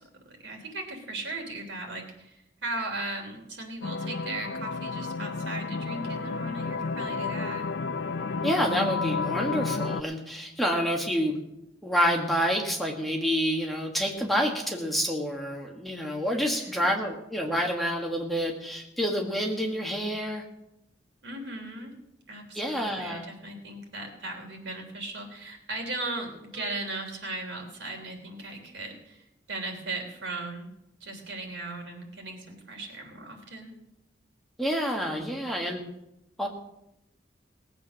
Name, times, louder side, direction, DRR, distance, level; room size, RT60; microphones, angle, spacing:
voice 1, 0.2-7.7 16.4-17.1 21.2-21.9 22.3-30.7 31.0-33.7, right 2 dB, 80° right, 2 dB, 3.2 m, -37 dB
sound 1, 3.8-10.0, left 4 dB, 65° left, 0.5 m, -31 dB
voice 2, 8.4-11.4 11.8-20.4 22.5-23.3 34.6-35.8 36.4-36.5, equal, ahead, 0 dB, 1.5 m, -28 dB
18.5 x 8.2 x 6.3 m, 0.85 s
head